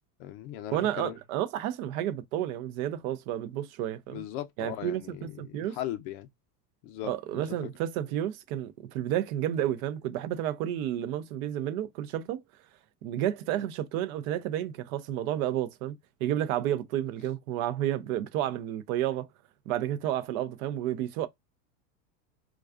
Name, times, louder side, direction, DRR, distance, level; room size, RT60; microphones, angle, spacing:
voice 1, 0.2-1.2 4.1-6.3 6.8-7.7, left 12 dB, 50° left, 0.5 m, -38 dB
voice 2, 0.7-4.2 4.6-5.8 7.0-12.4 13.0-19.3 19.7-21.3, right 12 dB, 60° right, 0.5 m, -31 dB
2.3 x 2.3 x 2.2 m
supercardioid pair, 115°, 49 cm